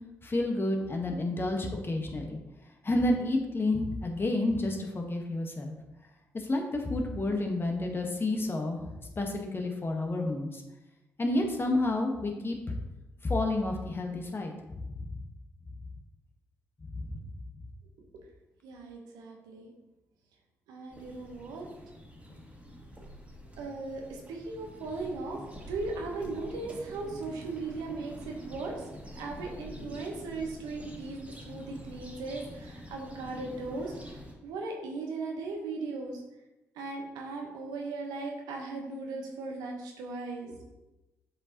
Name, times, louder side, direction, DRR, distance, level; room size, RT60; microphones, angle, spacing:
voice 1, 0.2-2.4 2.8-5.8 6.3-10.6 11.2-12.7 13.2-15.1 17.0-17.2, left 2 dB, 30° left, 2 dB, 1.3 m, -30 dB
voice 2, 18.6-19.7 20.7-21.7 23.6-25.4 25.7-28.9 29.1-31.2 31.4-36.2 36.7-40.5, right 3 dB, 75° right, 1 dB, 1.1 m, -38 dB
sound 1, 20.9-34.3, equal, 20° right, 2.2 m, -46 dB
7.5 x 4.8 x 2.9 m, 0.99 s
hypercardioid pair, 40°, 7 cm